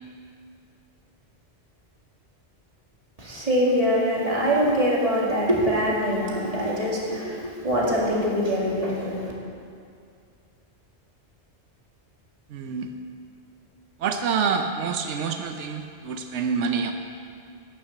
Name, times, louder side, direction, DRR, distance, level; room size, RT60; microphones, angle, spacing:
voice 1, 3.2-9.3, equal, 30° right, -4 dB, 2.3 m, -23 dB
voice 2, 12.5-12.9 14.0-16.9, right 6 dB, 85° right, 6 dB, 1.0 m, -27 dB
12.0 x 6.9 x 7.9 m, 2.3 s
omnidirectional pair, 1.2 m